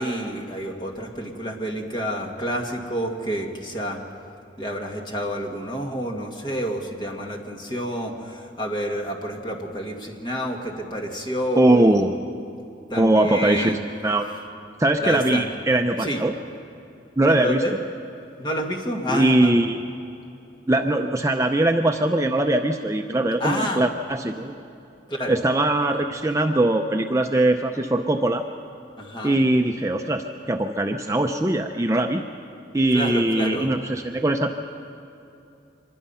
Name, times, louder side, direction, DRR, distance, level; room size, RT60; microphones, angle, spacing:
voice 1, 0.0-4.0 4.6-12.1 12.9-13.8 15.0-15.5 16.0-16.2 17.3-17.7 18.4-19.6 23.4-23.8 25.1-25.4 29.0-29.4 32.9-33.8, equal, 25° left, 1 dB, 1.9 m, -29 dB
voice 2, 11.6-12.2 13.0-14.3 14.8-16.3 17.2-17.8 19.1-19.8 20.7-24.6 25.3-28.4 29.2-32.2 32.7-34.5, right 1 dB, 15° right, 4 dB, 0.6 m, -21 dB
25.0 x 20.5 x 5.6 m, 2.8 s
head